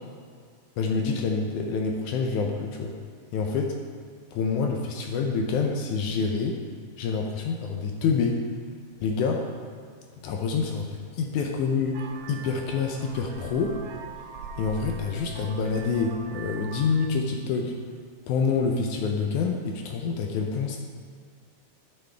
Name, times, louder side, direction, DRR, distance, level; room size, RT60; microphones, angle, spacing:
voice 1, 0.8-3.0 3.3-3.7 4.3-6.6 7.0-8.4 9.0-9.4 10.2-12.0 12.3-13.8 14.6-17.7 18.3-20.8, left 5 dB, 75° left, 2 dB, 2.0 m, -27 dB
Vehicle horn car horn honking, 11.9-17.1, right 6 dB, 90° right, 2.2 m, -42 dB
12.0 x 6.2 x 3.4 m, 2.1 s
omnidirectional pair, 3.8 m